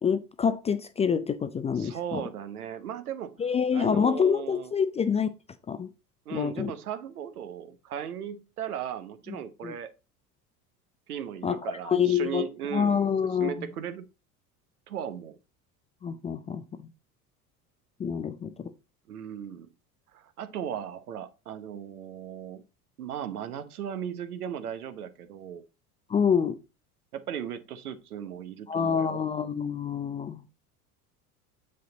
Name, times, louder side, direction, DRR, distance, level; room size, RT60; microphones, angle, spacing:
voice 1, 0.0-2.2 3.4-5.3 5.7-5.9 6.3-6.7 9.6-9.7 11.4-11.6 11.9-12.4 12.7-13.7 16.0-16.9 18.0-18.7 26.1-26.6 28.7-30.4, left 7 dB, 15° left, 0.4 m, -27 dB
voice 2, 1.7-3.4 3.7-4.7 6.3-9.9 11.1-13.1 13.4-14.0 14.9-15.4 19.1-19.7 20.1-22.6 23.0-25.6 27.1-29.2, right 9 dB, 75° right, 1.0 m, -37 dB
7.6 x 5.4 x 3.9 m
figure-of-eight pair, 70°, 45 cm